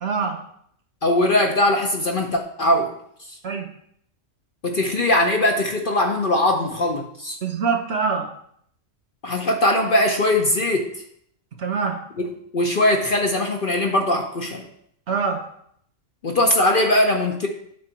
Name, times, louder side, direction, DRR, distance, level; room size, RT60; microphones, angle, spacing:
voice 1, 0.0-0.4 3.4-3.7 7.4-8.3 11.6-12.0 15.1-15.5, right 5 dB, 55° right, 4 dB, 1.0 m, -24 dB
voice 2, 1.0-2.9 3.3-3.4 4.6-7.4 9.2-11.0 12.2-14.7 16.2-17.5, left 1 dB, 45° left, 2 dB, 0.8 m, -20 dB
8.7 x 3.9 x 5.7 m, 0.69 s
omnidirectional pair, 1.5 m